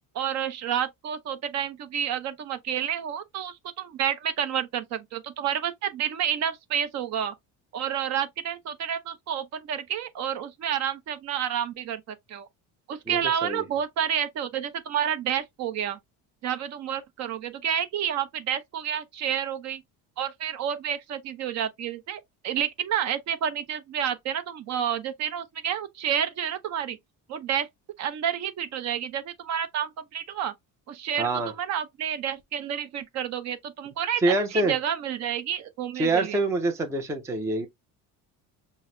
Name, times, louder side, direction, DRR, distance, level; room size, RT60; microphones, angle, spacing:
voice 1, 0.1-7.3 7.7-12.5 12.9-16.0 16.4-19.8 20.2-27.0 27.3-27.7 28.0-30.5 30.9-36.4, right 9 dB, 45° right, 0.6 m, -30 dB
voice 2, 13.1-13.6 31.2-31.5 34.2-34.8 35.9-37.7, right 2 dB, 10° right, 0.4 m, -25 dB
5.9 x 2.1 x 2.5 m
cardioid pair, 165°, 37 cm